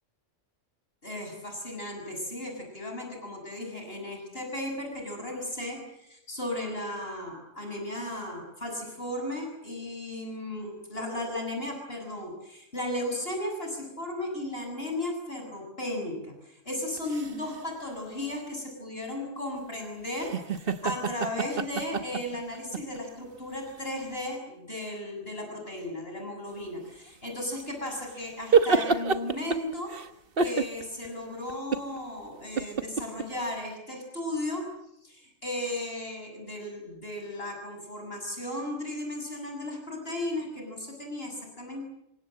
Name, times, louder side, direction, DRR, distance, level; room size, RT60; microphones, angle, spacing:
voice 1, 1.0-29.9 30.4-34.6 35.0-41.8, left 1 dB, 50° left, 2 dB, 7.2 m, -35 dB
sound 1, 17.0-17.6 20.2-23.0 23.7-23.8 27.6-30.1 30.4-31.1 31.5-32.0 32.6-33.2, right 5 dB, 50° right, 1.4 m, -27 dB
27.5 x 24.5 x 7.7 m, 0.80 s
omnidirectional pair, 1.3 m